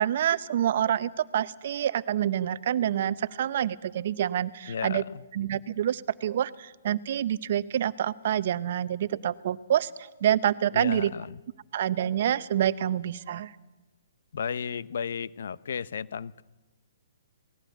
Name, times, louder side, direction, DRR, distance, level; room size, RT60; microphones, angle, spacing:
voice 1, 0.0-5.0 5.3-11.1 11.7-13.6, right 10 dB, 55° right, 17 dB, 0.8 m, -27 dB
voice 2, 4.7-5.2 10.7-11.4 14.3-16.4, left 7 dB, 65° left, 18 dB, 0.8 m, -34 dB
19.5 x 15.5 x 9.3 m, 1.1 s
hypercardioid pair, 135°, 0 cm